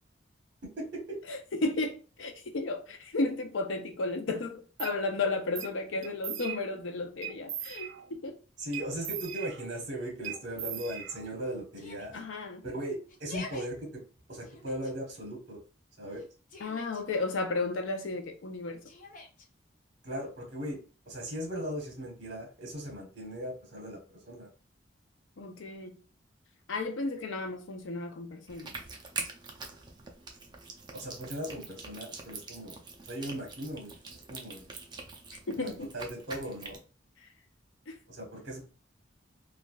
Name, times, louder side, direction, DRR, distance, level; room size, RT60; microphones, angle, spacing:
voice 1, 0.8-1.2 8.6-12.1 12.6-13.9 14.3-15.6 16.0-16.2 20.0-20.8 21.1-24.0 24.2-24.5 30.9-32.8 33.0-34.7 35.6-36.8 38.1-38.6, right 1 dB, 60° right, 1.0 m, -38 dB
voice 2, 1.3-8.4 12.1-12.6 16.6-18.8 25.4-26.0 26.7-28.8 35.3-35.9 37.2-37.3 37.9-38.0, left 3 dB, 85° left, 0.6 m, -33 dB
sound 1, 4.8-5.0 5.6-5.8 6.0-6.8 7.2-8.2 8.7-9.9 10.2-11.5, right 9 dB, 85° right, 0.4 m, -40 dB
Yell, 11.7-12.2 13.1-13.7 14.4-14.9 16.1-17.0 18.8-19.5, left 3 dB, 45° left, 0.5 m, -46 dB
sound 2, 28.5-36.8, right 4 dB, 25° right, 0.4 m, -44 dB
3.2 x 2.4 x 2.3 m
head